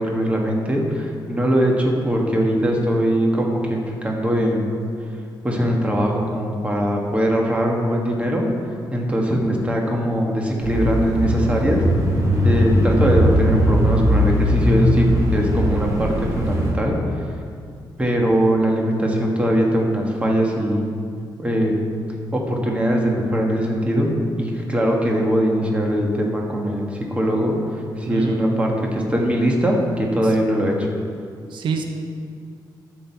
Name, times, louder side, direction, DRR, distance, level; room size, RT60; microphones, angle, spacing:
voice 1, 0.0-4.7 5.4-8.5 8.9-11.8 12.4-17.2 18.0-21.0 21.4-21.7 22.3-24.1 24.4-30.9, equal, 15° right, 0 dB, 1.5 m, -21 dB
Bicycle / Mechanisms, 10.6-16.7, equal, 40° right, 2.2 m, -19 dB
voice 2, 28.1-28.4 30.2-30.3 31.5-31.8, right 6 dB, 80° right, 4 dB, 0.9 m, -26 dB
12.0 x 7.8 x 4.5 m, 2.3 s
wide cardioid pair, 135°, 8 cm